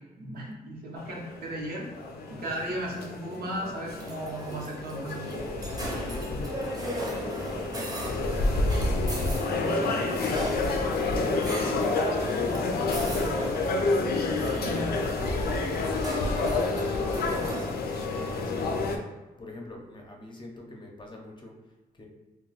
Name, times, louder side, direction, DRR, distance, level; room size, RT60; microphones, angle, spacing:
voice 1, 0.2-1.9 2.3-5.3, right 1 dB, 75° right, -3 dB, 0.9 m, -35 dB
sound 1, 1.0-19.0, left 3 dB, 75° left, 0.4 m, -29 dB
voice 2, 2.3-2.8 5.7-14.5 15.0-19.0 19.4-22.1, left 1 dB, 30° left, 0 dB, 0.6 m, -45 dB
sound 2, 3.9-17.7, right 1 dB, 25° right, 0.8 m, -38 dB
2.3 x 2.1 x 3.9 m, 1.2 s
cardioid pair, 80°, 16 cm